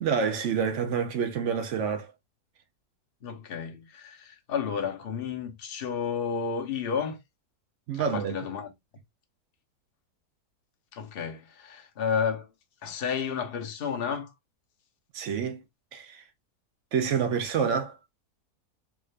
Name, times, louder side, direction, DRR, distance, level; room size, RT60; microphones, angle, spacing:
voice 1, 0.0-2.1 7.9-8.4 15.1-15.6 15.9-16.2 16.9-18.0, right 6 dB, 65° right, 0.8 m, -28 dB
voice 2, 3.2-7.2 7.9-8.7 10.9-12.5 12.8-14.3, left 6 dB, 50° left, 0.7 m, -31 dB
3.6 x 2.4 x 3.1 m
omnidirectional pair, 1.7 m